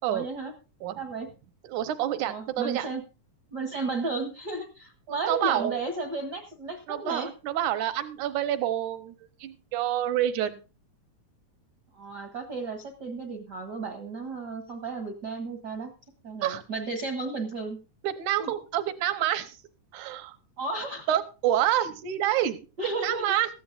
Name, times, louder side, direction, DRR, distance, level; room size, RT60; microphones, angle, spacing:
voice 1, 0.1-0.5 1.0-1.3 2.3-3.0 3.5-7.3 11.9-15.9 16.2-17.8 18.4-18.5 20.6-21.1 22.8-23.2, right 3 dB, 60° right, 4 dB, 1.0 m, -33 dB
voice 2, 1.6-2.9 5.1-5.8 6.9-9.2 9.4-10.6 16.4-16.6 18.0-19.6 19.9-20.4 21.1-22.6 23.0-23.5, right 12 dB, 80° right, 11 dB, 2.3 m, -28 dB
17.5 x 13.5 x 2.5 m, 0.31 s
omnidirectional pair, 3.5 m